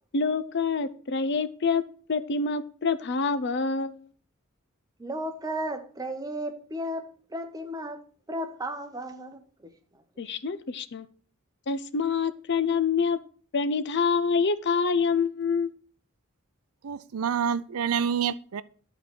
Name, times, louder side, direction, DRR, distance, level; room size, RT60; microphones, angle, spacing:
voice 1, 0.1-1.8 2.1-4.1 10.2-11.1 11.7-13.2 13.5-15.7, left 5 dB, 55° left, 0.6 m, -26 dB
voice 2, 5.0-8.0 8.3-10.0, right 1 dB, 15° right, 1.0 m, -35 dB
voice 3, 16.8-18.6, right 7 dB, 90° right, 0.5 m, -27 dB
11.0 x 4.1 x 6.1 m
head